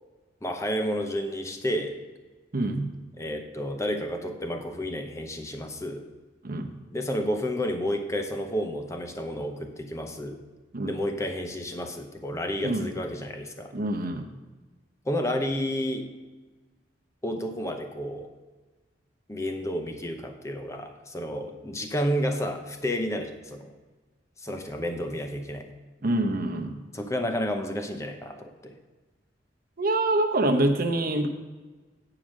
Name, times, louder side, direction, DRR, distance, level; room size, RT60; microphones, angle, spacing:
voice 1, 0.4-2.0 3.2-6.0 6.9-10.4 10.8-13.7 15.0-16.1 17.2-18.3 19.3-23.7 24.4-25.7 26.9-28.8, equal, 15° left, 5 dB, 0.8 m, -31 dB
voice 2, 2.5-2.9 6.4-6.8 10.7-10.9 12.6-12.9 13.7-14.3 26.0-26.8 29.8-31.3, right 1 dB, 50° right, 4 dB, 0.9 m, -25 dB
9.1 x 4.9 x 6.3 m, 1.3 s
head